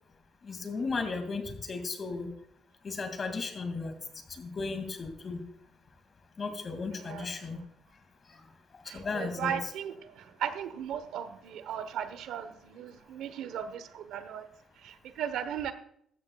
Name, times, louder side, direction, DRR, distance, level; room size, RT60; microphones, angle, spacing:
voice 1, 0.4-2.3 2.8-4.0 4.3-5.4 6.4-7.6 8.3-8.4 8.9-9.6, left 4 dB, 40° left, 7 dB, 2.4 m, -35 dB
voice 2, 6.9-7.5 8.9-14.4 14.8-15.7, right 9 dB, 85° right, 11 dB, 1.1 m, -37 dB
15.5 x 12.5 x 2.4 m, 0.68 s
cardioid pair, 90°, 0 cm